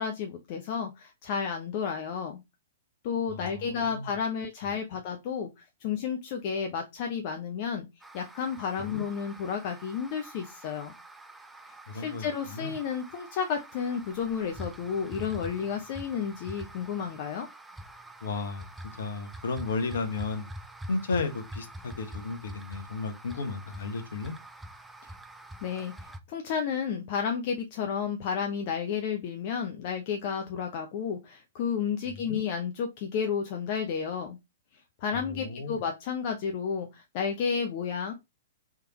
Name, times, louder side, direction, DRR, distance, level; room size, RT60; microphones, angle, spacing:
voice 1, 0.0-2.4 3.0-5.5 5.8-7.9 8.1-10.9 11.9-17.5 25.6-34.4 35.0-38.1, left 7 dB, 45° left, 0.6 m, -32 dB
voice 2, 3.3-4.1 8.8-9.0 11.9-12.7 18.2-20.5 20.9-24.3 32.1-32.4 35.1-35.8, left 3 dB, 65° left, 1.0 m, -34 dB
sound 1, 8.0-26.2, right 1 dB, 5° right, 0.5 m, -46 dB
3.6 x 3.3 x 2.9 m
figure-of-eight pair, 110°, 0 cm